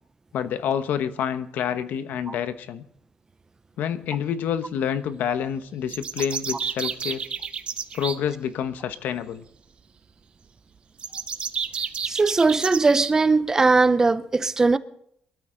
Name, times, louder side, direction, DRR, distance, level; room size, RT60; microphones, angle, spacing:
voice 1, 0.3-2.8 3.8-7.2 7.9-9.4, left 8 dB, 75° left, 1.1 m, -28 dB
sound 1, 5.9-8.2 11.0-13.1, right 6 dB, 40° right, 1.0 m, -30 dB
voice 2, 12.1-14.8, right 3 dB, 20° right, 0.5 m, -19 dB
24.0 x 13.0 x 3.9 m
cardioid pair, 160°, 3 cm